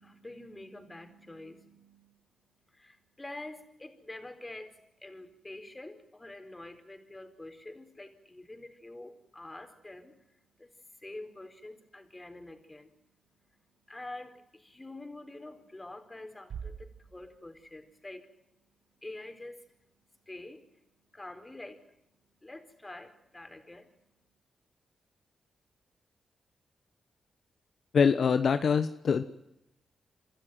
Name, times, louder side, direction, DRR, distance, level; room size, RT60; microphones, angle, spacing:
voice 1, 0.0-2.1 2.7-10.1 10.6-10.7 11.0-12.9 13.9-18.3 19.0-19.6 20.3-20.6 21.1-21.8 22.4-23.9, left 2 dB, 20° left, 7 dB, 4.6 m, -46 dB
Bass drum, 16.5-18.2, right 7 dB, 75° right, 1.1 m, -45 dB
voice 2, 27.9-29.2, left 6 dB, 65° left, 9 dB, 1.1 m, -24 dB
28.0 x 13.0 x 9.4 m, 0.86 s
cardioid pair, 55°, 0 cm